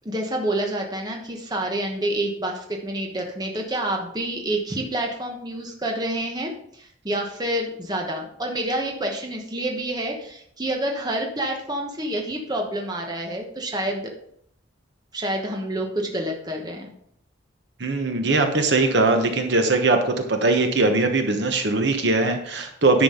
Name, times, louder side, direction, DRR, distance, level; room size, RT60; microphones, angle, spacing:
voice 1, 0.0-14.1 15.1-16.9, right 1 dB, 20° right, 1 dB, 1.0 m, -28 dB
voice 2, 17.8-23.0, right 3 dB, 55° right, 5 dB, 1.1 m, -20 dB
10.0 x 6.1 x 3.8 m, 0.69 s
head